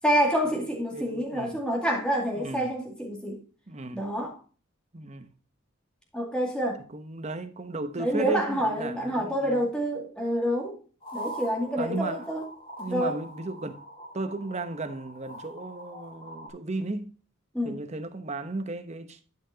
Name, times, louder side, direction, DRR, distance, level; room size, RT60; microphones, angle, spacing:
voice 1, 0.0-3.4 3.9-4.4 6.1-6.8 8.0-10.8 11.1-12.4 12.9-13.2 17.5-17.8, equal, 5° left, 2.3 m, -27 dB
voice 2, 0.9-1.6 2.3-2.7 3.7-4.1 4.9-5.3 6.9-9.6 11.7-12.3 12.8-13.8 14.1-17.2 17.6-19.2, right 2 dB, 35° right, 0.9 m, -35 dB
sound 1, 11.0-16.5, right 1 dB, 25° left, 2.2 m, -43 dB
12.0 x 5.8 x 2.8 m
head